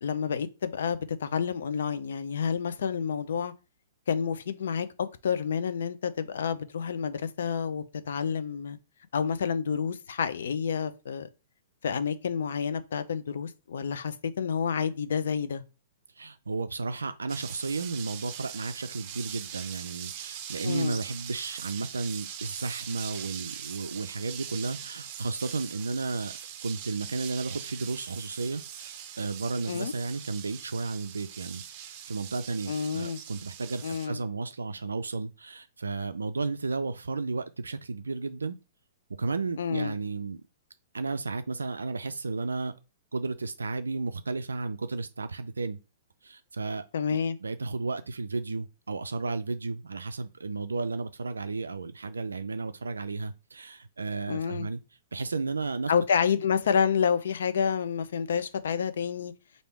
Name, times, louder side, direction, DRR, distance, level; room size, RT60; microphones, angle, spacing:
voice 1, 0.0-3.5 4.1-4.9 5.2-8.8 9.1-11.3 11.8-15.6 20.6-21.0 29.7-29.9 32.7-33.2 33.8-34.2 39.6-39.9 46.9-47.4 54.3-54.7 55.9-59.3, left 7 dB, 65° left, 0.5 m, -29 dB
voice 2, 16.2-26.3 26.6-31.6 32.1-38.6 39.2-40.4 40.9-42.7 43.1-45.8 46.2-46.8 47.4-54.8 55.1-55.9, right 3 dB, 85° right, 0.3 m, -33 dB
sound 1, 17.3-34.1, right 9 dB, 40° right, 0.6 m, -42 dB
3.3 x 2.6 x 4.5 m
figure-of-eight pair, 115°, 0 cm